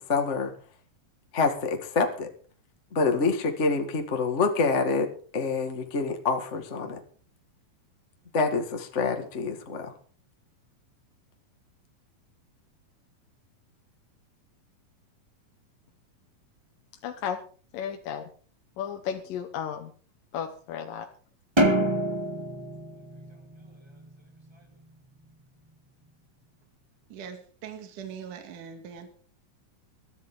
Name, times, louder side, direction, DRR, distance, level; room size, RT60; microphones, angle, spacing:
voice 1, 0.1-0.5 1.3-2.3 2.9-5.1 5.3-7.0 8.3-9.9, left 4 dB, 30° left, 5 dB, 1.4 m, -26 dB
voice 2, 17.0-17.4 17.7-18.3 18.8-19.9 20.3-21.1, left 8 dB, 75° left, 4 dB, 2.7 m, -33 dB
sound 1, 21.6-24.1, right 1 dB, 20° right, 0.6 m, -26 dB
voice 3, 27.1-29.1, right 7 dB, 65° right, 6 dB, 3.4 m, -41 dB
22.0 x 13.0 x 3.8 m, 0.42 s
omnidirectional pair, 4.1 m